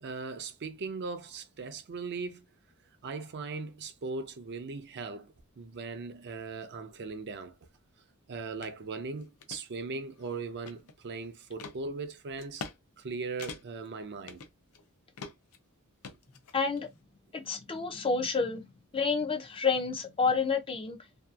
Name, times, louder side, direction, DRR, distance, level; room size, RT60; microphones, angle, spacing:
voice 1, 0.0-2.5 3.0-7.5 8.3-12.6 13.0-14.4, right 4 dB, 50° right, 0.5 m, -39 dB
sound 1, 8.6-8.7 9.2-9.6 10.2-11.1 11.6-11.8 12.4-12.8 13.0-13.1 13.4-13.9 14.3-14.8 15.2-15.6 16.0-16.8, left 5 dB, 75° left, 0.5 m, -44 dB
voice 2, 16.5-16.9 17.3-18.7 18.9-21.0, left 4 dB, 25° left, 0.4 m, -29 dB
2.7 x 2.3 x 2.2 m
head